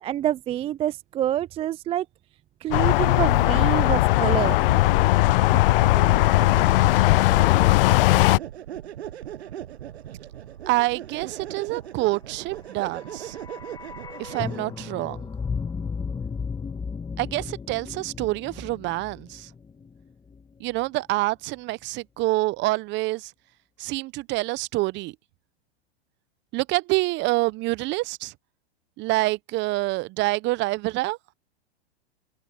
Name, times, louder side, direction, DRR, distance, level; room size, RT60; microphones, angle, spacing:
voice 1, 0.0-2.1 2.6-4.6, right 12 dB, 20° right, 0.4 m, -27 dB
sound 1, 2.7-8.4, left 18 dB, 60° left, 0.5 m, -18 dB
sound 2, 3.2-14.9, right 11 dB, 80° right, 1.1 m, -39 dB
voice 2, 10.7-13.4 14.2-15.3 17.2-19.5 20.6-23.3 23.8-25.1 26.5-28.3 29.0-31.2, right 20 dB, 35° right, 0.8 m, -27 dB
sound 3, 12.7-20.8 21.1-21.2, left 5 dB, 15° left, 1.6 m, -35 dB
hypercardioid pair, 110°, 32 cm